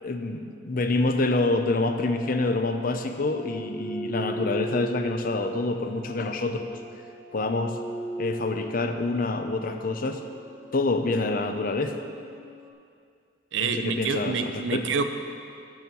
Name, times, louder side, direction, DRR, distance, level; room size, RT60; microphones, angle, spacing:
voice 1, 0.0-6.8 7.3-7.8 8.2-10.2 10.7-12.0 13.6-14.9, left 2 dB, 45° left, 7 dB, 0.6 m, -27 dB
sound 1, 0.9-12.7, right 1 dB, 25° left, 1.4 m, -40 dB
voice 2, 13.5-15.0, right 5 dB, 75° right, 8 dB, 0.6 m, -27 dB
7.8 x 7.1 x 6.8 m, 2.3 s
head